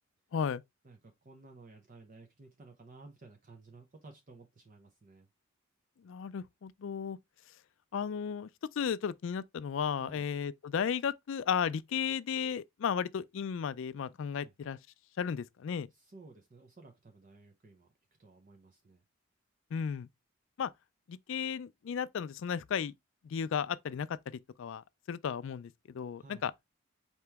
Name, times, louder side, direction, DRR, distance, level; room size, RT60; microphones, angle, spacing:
voice 1, 0.3-0.6 6.0-7.2 7.9-14.8 15.2-15.9 19.7-20.1 20.6-20.7 21.1-22.9 23.2-24.2 24.6-26.5, left 7 dB, 60° left, 0.3 m, -34 dB
voice 2, 0.8-5.3 10.0-10.2 14.3-14.5 15.9-17.9 18.2-19.0 26.2-26.5, right 3 dB, 35° right, 0.6 m, -55 dB
4.4 x 2.9 x 3.4 m
head